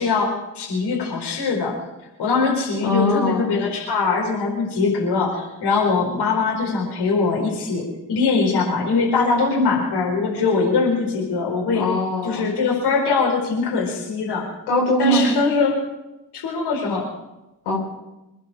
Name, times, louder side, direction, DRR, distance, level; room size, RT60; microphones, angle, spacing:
voice 1, 0.0-1.7 2.2-11.8 12.2-14.4 15.0-15.7 16.3-17.1, left 4 dB, 55° left, -2 dB, 4.7 m, -22 dB
voice 2, 2.8-3.5 11.7-12.5 14.7-15.3 17.7-17.8, left 1 dB, 70° left, -4 dB, 5.2 m, -21 dB
27.0 x 10.5 x 5.1 m, 0.98 s
figure-of-eight pair, 40°, 48 cm